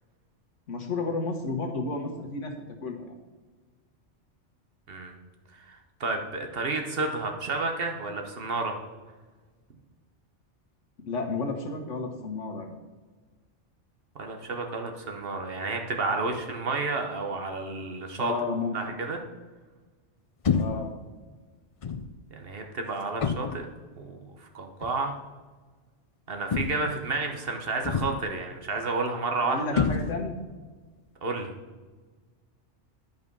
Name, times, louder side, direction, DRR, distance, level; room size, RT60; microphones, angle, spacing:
voice 1, 0.7-2.5 2.8-3.1 11.0-12.8 18.2-19.0 20.5-20.9 29.4-30.4, left 3 dB, 90° left, 3 dB, 1.6 m, -32 dB
voice 2, 5.5-8.8 14.1-18.3 18.7-19.2 22.3-23.7 24.0-25.1 26.3-29.8 31.2-31.5, right 3 dB, 55° right, 4 dB, 1.2 m, -31 dB
sound 1, 20.4-20.9 21.8-22.1 23.2-23.7 24.8-25.0 26.5-27.0 27.8-28.3 29.7-30.4, left 5 dB, 50° left, 0.4 m, -28 dB
11.0 x 5.3 x 5.3 m, 1.4 s
omnidirectional pair, 1.2 m